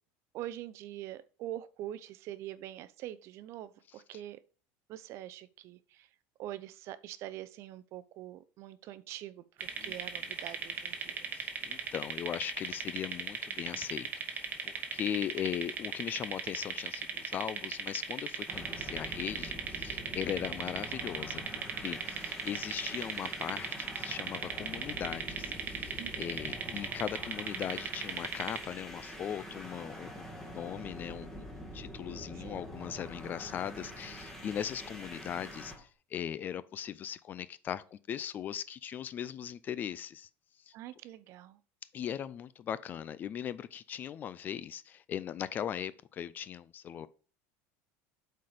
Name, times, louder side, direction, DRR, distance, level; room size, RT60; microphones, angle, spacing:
voice 1, 0.3-4.4 4.9-6.1 6.4-11.3 26.0-26.4 32.3-32.8 40.7-41.6, right 13 dB, 45° right, 0.5 m, -44 dB
sound 1, 9.6-28.6, right 6 dB, 25° right, 1.1 m, -38 dB
voice 2, 11.3-21.4 21.8-31.5 31.7-40.3 40.7-40.8 41.9-47.1, left 9 dB, 30° left, 0.4 m, -39 dB
sound 2, 18.5-35.8, equal, 5° left, 1.5 m, -45 dB
7.9 x 4.3 x 4.9 m
cardioid pair, 155°, 6 cm